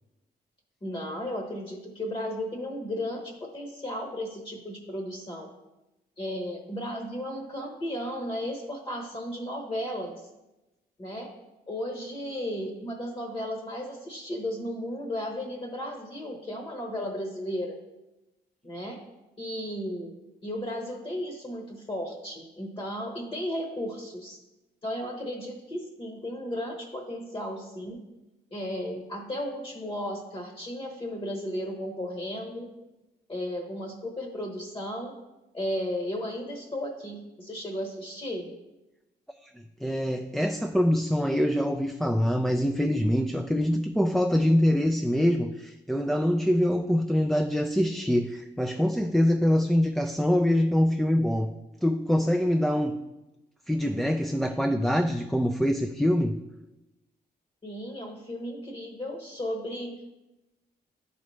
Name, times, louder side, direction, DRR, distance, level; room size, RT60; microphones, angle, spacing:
voice 1, 0.8-5.5 6.2-10.1 11.0-11.3 11.7-17.7 18.6-19.0 19.4-20.1 20.4-24.4 24.8-28.0 28.5-32.7 33.3-35.1 35.5-38.5 57.6-60.0, equal, 30° left, 2 dB, 1.0 m, -34 dB
voice 2, 39.8-51.5 51.8-53.0 53.7-56.4, equal, ahead, 5 dB, 0.3 m, -24 dB
10.5 x 4.1 x 3.1 m, 0.99 s
cardioid pair, 95°, 18 cm